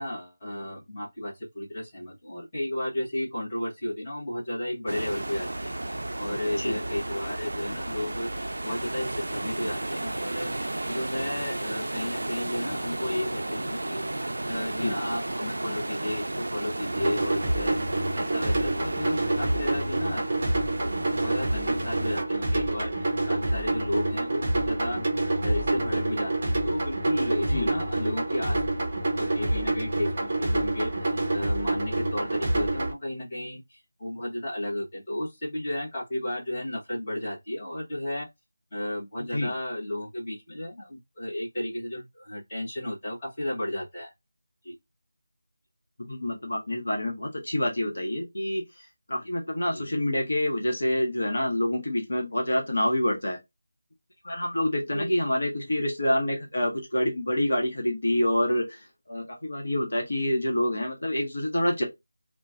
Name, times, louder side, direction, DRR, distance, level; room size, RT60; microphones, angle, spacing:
voice 1, 0.0-8.3 8.6-10.5 10.9-14.1 14.4-20.3 20.8-25.0 25.4-28.6 29.2-38.3 38.7-44.1 44.6-44.7 49.7-49.9 54.9-55.1, left 1 dB, 15° left, 1.2 m, -33 dB
sound 1, 4.9-22.2, right 2 dB, 70° right, 0.3 m, -33 dB
sound 2, 16.9-32.9, right 2 dB, 20° right, 0.6 m, -27 dB
voice 2, 46.1-53.4 54.2-61.8, left 1 dB, 55° left, 0.9 m, -27 dB
3.0 x 2.1 x 2.4 m
figure-of-eight pair, 180°, 0 cm